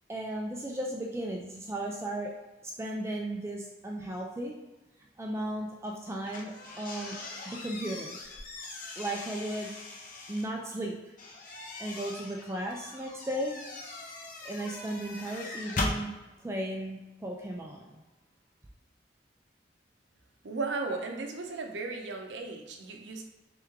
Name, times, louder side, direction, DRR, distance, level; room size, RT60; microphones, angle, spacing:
voice 1, 0.1-2.4 2.6-4.6 5.2-7.2 7.5-8.2 9.0-9.7 10.3-10.9 11.8-13.6 14.4-16.1 16.4-18.0, right 1 dB, 15° right, 0 dB, 0.3 m, -35 dB
sound 1, 6.2-10.5 11.2-16.0, left 2 dB, 50° left, 0.6 m, -40 dB
voice 2, 20.4-23.2, right 3 dB, 85° right, 3 dB, 0.6 m, -35 dB
3.4 x 3.1 x 3.5 m, 1.1 s
head